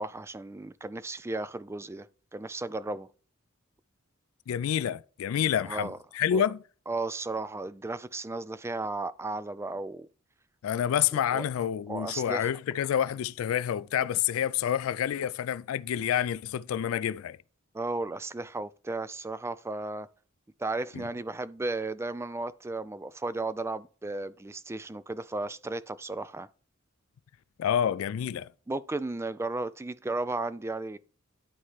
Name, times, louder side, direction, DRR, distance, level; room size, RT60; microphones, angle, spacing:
voice 1, 0.0-2.1 2.3-3.1 5.6-6.0 6.3-6.4 6.9-10.1 11.3-11.4 11.9-12.5 17.7-20.1 20.6-26.5 28.7-31.0, right 2 dB, 15° right, 0.3 m, -34 dB
voice 2, 4.5-6.6 10.6-17.4 20.9-21.0 27.6-28.5, left 9 dB, 70° left, 0.3 m, -28 dB
11.0 x 4.2 x 3.2 m
head